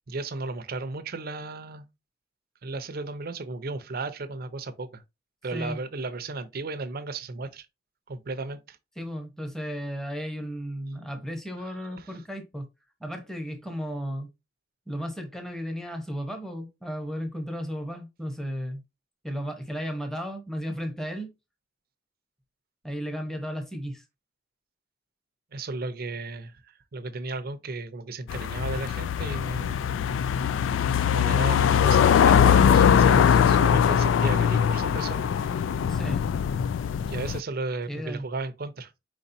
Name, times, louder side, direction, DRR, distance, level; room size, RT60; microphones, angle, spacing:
voice 1, 0.1-1.8 2.6-5.0 5.4-7.7 8.1-8.8 25.5-29.9 31.1-35.3 37.0-38.9, right 3 dB, 55° right, 0.6 m, -34 dB
voice 2, 5.5-5.8 9.0-12.7 13.0-14.3 14.9-18.8 19.2-21.3 22.8-24.0 35.9-36.2 37.9-38.3, equal, 5° left, 0.9 m, -34 dB
sound 1, 28.3-37.4, left 8 dB, 80° left, 0.3 m, -21 dB
4.7 x 4.2 x 2.6 m
head